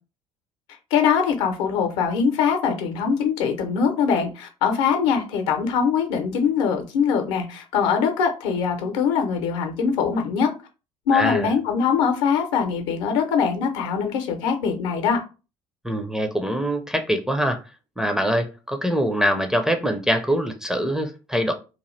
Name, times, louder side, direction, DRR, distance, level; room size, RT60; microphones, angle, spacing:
voice 1, 0.9-10.5 11.1-15.2, left 6 dB, 65° left, 5 dB, 0.7 m, -22 dB
voice 2, 11.1-11.5 15.8-17.6 18.0-21.5, equal, 5° right, 5 dB, 0.5 m, -23 dB
2.9 x 2.3 x 3.1 m, 0.32 s
figure-of-eight pair, 60°, 16 cm